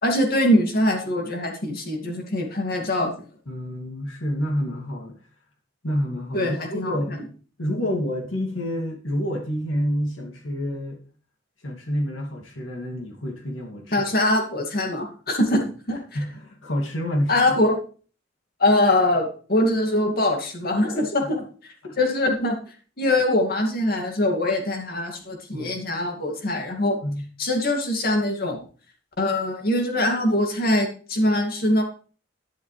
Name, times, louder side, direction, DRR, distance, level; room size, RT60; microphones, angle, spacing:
voice 1, 0.0-3.1 6.3-6.9 13.9-15.6 15.9-16.0 17.3-17.8 18.6-21.5 22.0-22.6 23.0-27.0 27.4-28.6 29.2-31.8, left 1 dB, 50° left, 2 dB, 2.4 m, -22 dB
voice 2, 3.5-5.2 5.8-7.3 7.6-11.0 11.6-14.1 15.5-15.6 16.1-17.6 21.0-21.3 21.8-22.0 25.5-25.8 27.0-27.2, equal, 85° left, 2 dB, 2.5 m, -28 dB
11.0 x 10.5 x 3.4 m, 0.40 s
head